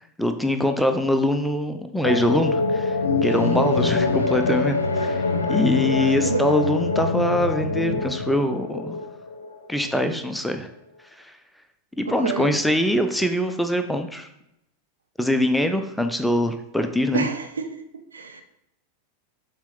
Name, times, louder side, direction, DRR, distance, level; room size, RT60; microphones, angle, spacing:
voice 1, 0.2-5.2 5.5-9.0 9.7-10.7 11.2-11.3 12.0-14.3 15.2-17.2, left 1 dB, ahead, 0.6 m, -23 dB
sound 1, 2.0-10.0, left 3 dB, 75° left, 0.6 m, -24 dB
voice 2, 6.2-6.5 12.1-12.6 17.1-17.8 18.1-18.4, right 5 dB, 70° right, 0.8 m, -28 dB
7.2 x 4.1 x 3.9 m
figure-of-eight pair, 90°, 0 cm